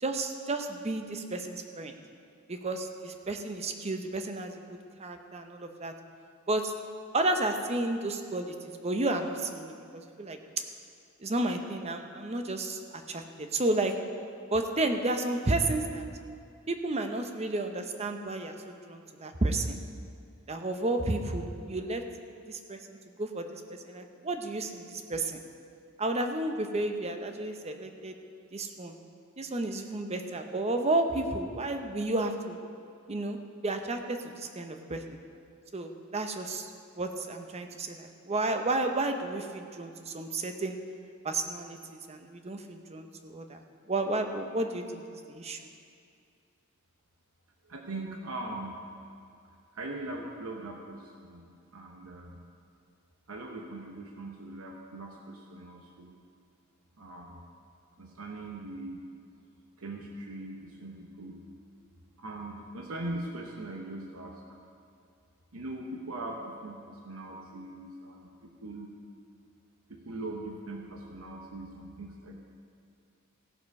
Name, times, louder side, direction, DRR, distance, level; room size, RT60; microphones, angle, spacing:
voice 1, 0.0-2.0 2.5-5.9 6.5-6.7 7.1-10.4 11.2-12.8 13.1-13.9 14.5-16.0 16.7-19.8 20.5-22.0 22.5-25.4 26.0-28.2 28.5-28.9 29.4-32.6 33.1-35.2 35.7-36.7 37.0-40.8 41.2-43.6 43.9-45.0 45.3-45.6, right 2 dB, 30° right, 6 dB, 0.8 m, -32 dB
voice 2, 47.6-48.8 49.7-52.5 53.3-56.1 57.0-57.4 58.0-59.1 59.8-61.4 62.2-64.4 65.5-68.9 69.9-72.4, right 2 dB, 90° right, 1 dB, 0.9 m, -41 dB
15.5 x 6.7 x 5.3 m, 2.4 s
head